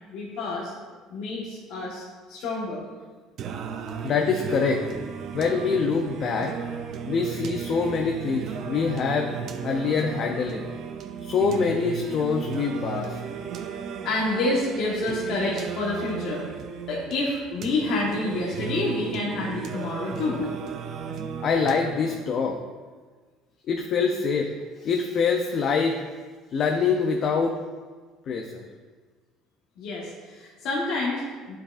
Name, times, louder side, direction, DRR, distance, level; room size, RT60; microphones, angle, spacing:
voice 1, 0.1-0.7 1.1-2.8 14.0-16.4 16.9-20.4 29.8-31.6, left 2 dB, 60° left, -6 dB, 1.3 m, -28 dB
Singing, 3.4-22.4, right 7 dB, 50° right, 0.5 m, -35 dB
voice 2, 4.0-4.8 5.3-6.5 7.1-9.3 9.6-10.7 11.2-13.2 21.4-22.6 23.7-24.5 24.8-26.0 26.5-27.6 28.3-28.6, left 5 dB, 40° left, 3 dB, 0.5 m, -25 dB
10.0 x 4.8 x 2.5 m, 1.4 s
cardioid pair, 150°, 0 cm